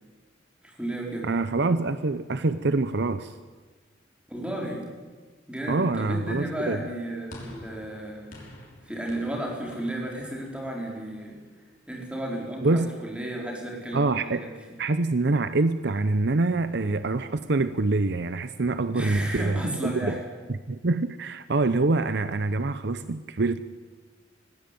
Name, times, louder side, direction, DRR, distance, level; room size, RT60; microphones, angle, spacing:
voice 1, 0.6-1.3 4.3-4.9 5.5-8.3 8.8-11.4 11.9-14.5 18.9-20.2, right 1 dB, 5° right, -1 dB, 4.7 m, -33 dB
voice 2, 1.2-3.3 5.7-6.8 12.6-12.9 13.9-14.4 14.8-20.2 20.5-23.6, right 3 dB, 60° right, 12 dB, 0.7 m, -25 dB
sound 1, 7.3-11.7, left 1 dB, 45° left, 6.1 m, -48 dB
20.0 x 15.5 x 9.3 m, 1.4 s
head